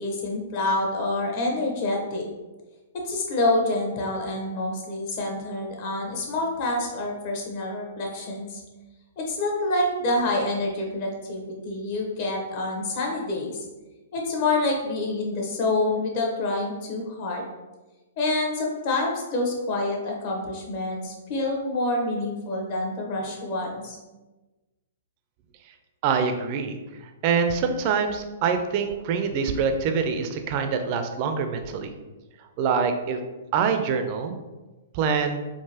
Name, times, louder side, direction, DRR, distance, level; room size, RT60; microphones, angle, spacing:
voice 1, 0.0-2.3 3.0-8.6 9.2-13.6 14.1-17.4 18.2-24.0, left 2 dB, 45° left, -1 dB, 1.0 m, -27 dB
voice 2, 26.0-26.8 27.2-31.9 32.6-33.2 33.5-34.4 34.9-35.4, right 6 dB, 45° right, 6 dB, 0.4 m, -25 dB
3.7 x 2.5 x 2.8 m, 1.1 s
hypercardioid pair, 120°, 0 cm